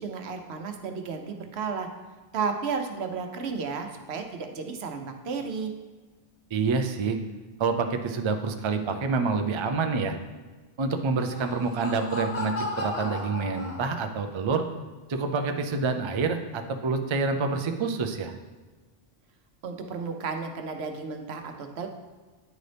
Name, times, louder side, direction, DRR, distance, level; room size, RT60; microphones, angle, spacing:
voice 1, 0.0-1.9 2.3-5.7 19.6-21.9, right 5 dB, 85° right, 5 dB, 1.0 m, -33 dB
voice 2, 6.5-7.2 7.6-10.2 10.8-14.6 15.1-18.3, right 4 dB, 45° right, 6 dB, 0.4 m, -27 dB
Laughter, 11.2-14.3, left 2 dB, 45° left, 1.0 m, -35 dB
9.3 x 3.9 x 3.3 m, 1.3 s
omnidirectional pair, 1.1 m